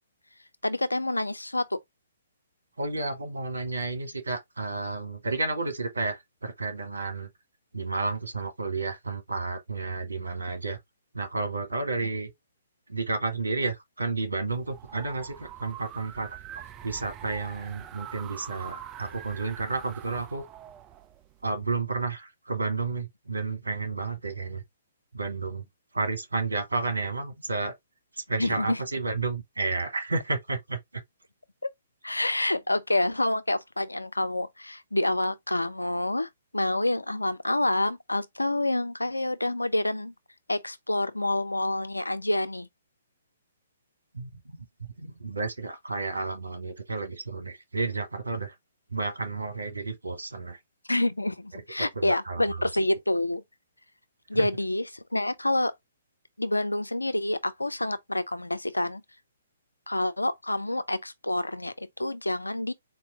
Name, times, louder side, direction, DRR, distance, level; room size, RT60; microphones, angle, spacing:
voice 1, 0.6-1.8 28.4-28.8 32.0-40.1 40.5-42.7 50.9-53.4 54.3-55.7 56.4-59.0 59.9-62.7, left 1 dB, 85° left, 0.4 m, -28 dB
voice 2, 2.8-7.3 7.7-10.8 11.1-12.3 12.9-16.4 16.8-20.4 21.4-24.6 25.1-25.6 25.9-27.7 28.3-31.0 44.1-44.3 45.0-48.5 48.9-50.6 51.8-52.4 54.3-54.5, right 3 dB, 75° right, 1.4 m, -31 dB
sound 1, 14.5-21.6, right 10 dB, 20° right, 0.5 m, -44 dB
4.1 x 2.6 x 3.5 m
figure-of-eight pair, 125°, 0 cm